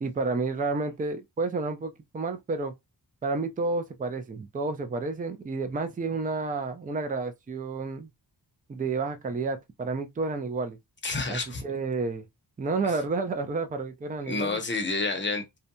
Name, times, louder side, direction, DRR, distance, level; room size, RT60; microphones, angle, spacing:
voice 1, 0.0-2.7 3.2-8.1 8.7-10.8 11.3-12.3 12.6-14.6, right 3 dB, 20° right, 0.3 m, -30 dB
voice 2, 11.0-11.6 12.8-12.9 14.3-15.6, left 3 dB, 30° left, 0.7 m, -29 dB
2.7 x 2.2 x 2.6 m
wide cardioid pair, 150°, 41 cm